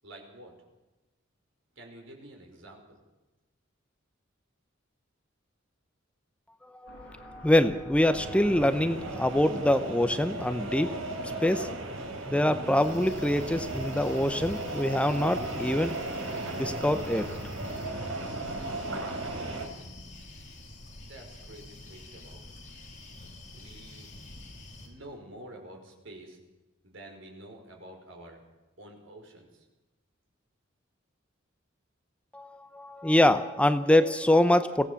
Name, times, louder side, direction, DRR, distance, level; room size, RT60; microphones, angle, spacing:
voice 1, 0.0-0.5 1.8-3.0 21.0-22.4 23.5-24.1 24.8-26.4 26.8-28.4 28.8-29.7, right 1 dB, 70° right, 2 dB, 5.4 m, -48 dB
voice 2, 6.8-11.0 11.4-11.7 12.3-16.0 16.5-17.3 32.3-34.9, left 1 dB, 5° left, 11 dB, 0.7 m, -25 dB
Aircraft, 6.9-13.1, equal, 55° left, 7.9 m, -50 dB
sound 1, 8.1-19.7, right 2 dB, 85° right, 3.7 m, -36 dB
sound 2, 12.8-24.9, left 1 dB, 40° left, 4.1 m, -47 dB
22.5 x 17.0 x 7.1 m, 1.1 s
head